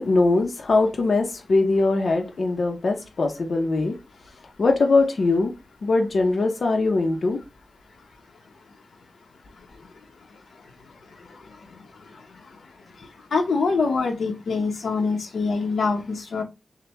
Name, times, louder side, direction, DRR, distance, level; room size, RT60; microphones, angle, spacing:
voice 1, 0.0-4.0 4.6-5.5 5.8-7.4, left 3 dB, 60° left, 0.7 m, -21 dB
voice 2, 13.3-16.4, left 4 dB, 85° left, 0.9 m, -24 dB
6.6 x 2.2 x 3.0 m
wide cardioid pair, 105°, 0 cm